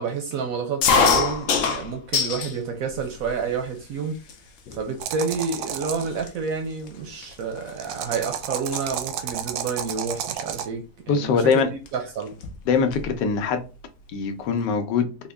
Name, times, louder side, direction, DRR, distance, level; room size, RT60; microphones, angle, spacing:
voice 1, 0.0-4.2 4.7-12.4, right 5 dB, 70° right, 0.9 m, -29 dB
sound 1, 0.8-2.6 3.0-3.6 4.3-4.4 4.7-5.0 5.7-5.8 6.0-8.3 8.5-8.8 10.2-10.4 11.5-11.6 11.9-12.0 12.2-13.1, left 5 dB, 65° left, 0.8 m, -24 dB
sound 2, 5.0-6.1 7.8-10.7, right 9 dB, 85° right, 1.2 m, -31 dB
voice 2, 11.1-11.7 12.7-13.6 14.1-15.1, left 5 dB, 85° left, 1.3 m, -22 dB
3.6 x 2.1 x 3.4 m
omnidirectional pair, 1.9 m